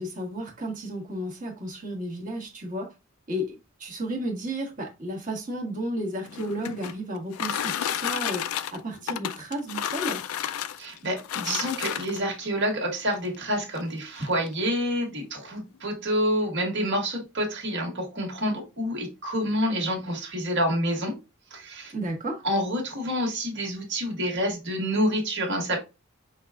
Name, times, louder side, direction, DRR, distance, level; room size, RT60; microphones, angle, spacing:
voice 1, 0.0-2.9 3.3-10.2 21.9-22.4, equal, 40° right, 1.4 m, -33 dB
sound 1, 6.2-12.4 13.2-13.3 13.7-13.8 14.2-14.5, left 10 dB, 85° left, 0.4 m, -31 dB
voice 2, 10.8-21.1 21.5-21.9 22.4-25.8, equal, 55° right, 1.6 m, -28 dB
5.6 x 2.4 x 3.5 m
head